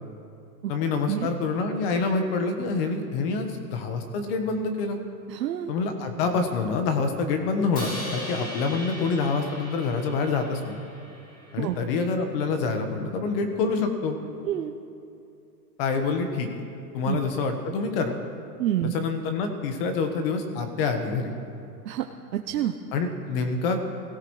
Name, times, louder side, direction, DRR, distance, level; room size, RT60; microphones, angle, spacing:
voice 1, 0.7-5.0 5.7-10.8 11.5-14.2 15.8-16.5 16.9-18.1 18.9-21.3 22.9-23.8, left 4 dB, 35° left, 5 dB, 1.5 m, -26 dB
voice 2, 5.3-5.7 11.6-11.8 14.4-14.7 17.1-17.2 18.6-18.9 21.8-22.1 22.3-22.7, right 12 dB, 75° right, 4 dB, 0.9 m, -27 dB
Crash cymbal, 7.8-11.9, left 1 dB, 15° left, 2.1 m, -39 dB
23.5 x 17.0 x 3.3 m, 2.6 s
supercardioid pair, 165°, 50 cm